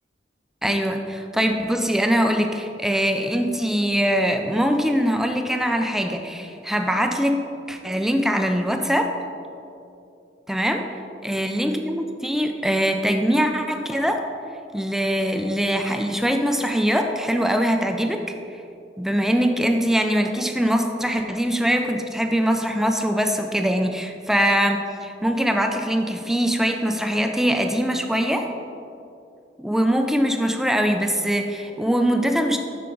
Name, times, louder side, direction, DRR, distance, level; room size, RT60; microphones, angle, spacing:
voice 1, 0.6-7.4 7.7-9.1 10.5-10.8 11.2-14.2 14.7-18.3 19.0-28.5 29.6-32.6, equal, ahead, 5 dB, 0.3 m, -22 dB
7.6 x 5.7 x 3.7 m, 2.7 s
head